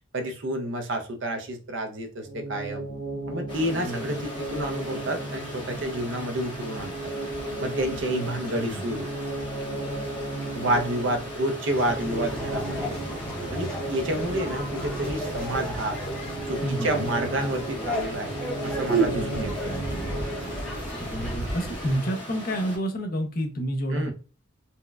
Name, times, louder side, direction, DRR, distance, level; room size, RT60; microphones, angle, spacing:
voice 1, 0.1-2.9 3.3-6.9 7.6-9.1 10.5-12.9 13.5-16.0 16.5-18.3 18.6-19.7 23.9-24.1, right 1 dB, 65° right, 6 dB, 0.6 m, -29 dB
sound 1, 2.2-21.0, right 2 dB, 80° left, 1.1 m, -36 dB
Stream, 3.5-22.8, left 1 dB, 20° left, 1.2 m, -39 dB
voice 2, 3.7-4.2 8.1-8.2 8.6-8.8 16.6-17.1 19.1-20.1 21.0-24.1, equal, 45° left, 4 dB, 0.5 m, -30 dB
sound 2, 11.7-22.0, right 2 dB, 5° left, 0.8 m, -33 dB
4.2 x 2.1 x 2.3 m, 0.35 s
head